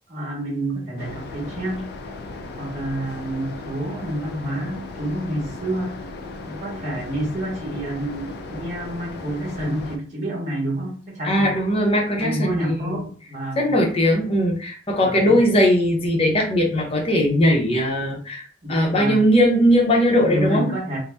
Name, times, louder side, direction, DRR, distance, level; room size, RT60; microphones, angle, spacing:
voice 1, 0.1-1.9 2.6-6.0 6.5-11.5 12.2-13.7 15.0-15.3 18.6-19.2 20.2-21.0, right 1 dB, 40° right, -2 dB, 1.1 m, -28 dB
sound 1, 1.0-10.0, left 3 dB, 60° left, 0.4 m, -36 dB
voice 2, 11.2-13.0 13.6-20.7, equal, 35° left, 0 dB, 0.7 m, -19 dB
2.7 x 2.0 x 3.3 m, 0.43 s
head